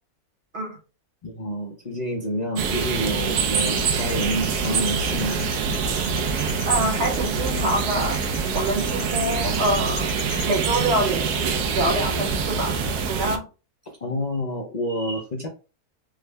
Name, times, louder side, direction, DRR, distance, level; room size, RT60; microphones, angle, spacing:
voice 1, 1.2-5.4 13.9-15.5, equal, 70° left, 1 dB, 0.4 m, -29 dB
sound 1, 2.6-13.4, right 5 dB, 85° right, 1.1 m, -25 dB
sound 2, 3.6-10.9, right 2 dB, 85° left, 1.3 m, -35 dB
voice 2, 6.6-8.2 8.5-10.2 10.4-12.8 13.1-13.4, right 1 dB, 50° right, 1 dB, 1.0 m, -26 dB
3.6 x 2.1 x 3.3 m, 0.33 s
omnidirectional pair, 1.6 m